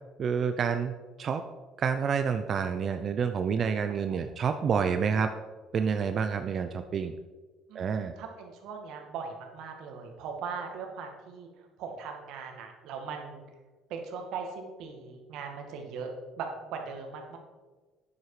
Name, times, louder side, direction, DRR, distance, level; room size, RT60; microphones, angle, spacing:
voice 1, 0.2-1.4 1.8-5.3 5.7-7.1 7.7-8.1, right 6 dB, 45° right, 8 dB, 0.6 m, -28 dB
voice 2, 3.8-4.2 7.7-11.5 11.8-13.4 13.9-17.4, right 5 dB, 75° right, 3 dB, 2.0 m, -39 dB
9.8 x 7.8 x 4.9 m, 1.3 s
supercardioid pair, 95°, 0 cm